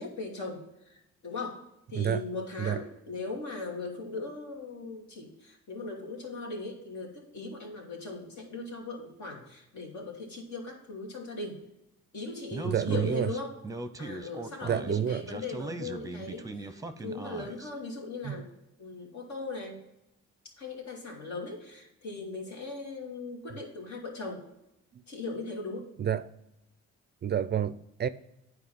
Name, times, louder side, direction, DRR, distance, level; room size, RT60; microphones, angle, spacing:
voice 1, 0.0-1.6 1.9-11.6 12.1-13.5 14.0-18.5 18.8-19.8 20.6-24.4 25.1-25.9, left 3 dB, 70° left, 2.6 m, -39 dB
Speech, 12.5-17.7, right 2 dB, 10° right, 0.7 m, -39 dB
voice 2, 12.6-13.3 14.6-15.2 18.2-18.4 24.9-25.0 26.0-26.3 27.2-28.1, right 9 dB, 35° right, 0.4 m, -29 dB
9.3 x 4.7 x 5.3 m
cardioid pair, 90°, 30 cm